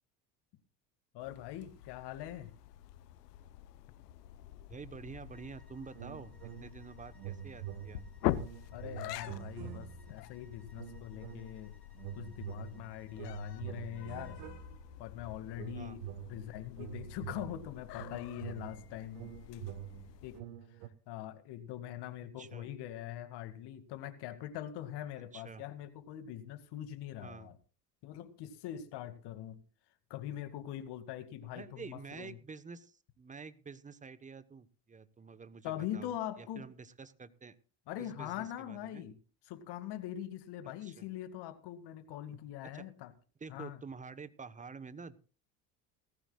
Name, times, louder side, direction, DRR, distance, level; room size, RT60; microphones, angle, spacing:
voice 1, 1.1-2.5 8.7-11.7 12.2-14.4 15.0-19.7 20.2-20.4 20.7-20.8 21.1-27.6 28.0-29.6 30.1-32.4 35.6-36.6 37.9-39.2 39.5-43.1 43.5-43.8, left 12 dB, 55° left, 2.2 m, -43 dB
sound 1, 1.2-20.4, left 14 dB, 75° left, 0.9 m, -45 dB
voice 2, 4.7-6.3 6.6-8.0 15.7-16.0 22.4-22.7 25.3-25.6 27.2-27.5 31.5-37.5 38.0-39.0 40.8-41.0 42.7-42.8 43.4-45.2, right 5 dB, 15° right, 1.1 m, -48 dB
sound 2, 5.3-14.5, left 1 dB, ahead, 5.0 m, -67 dB
sound 3, 6.0-6.9 7.2-10.2 10.8-11.6 12.0-15.1 15.6-20.9, right 11 dB, 65° right, 1.4 m, -46 dB
19.0 x 14.5 x 2.4 m
hypercardioid pair, 75°, 48 cm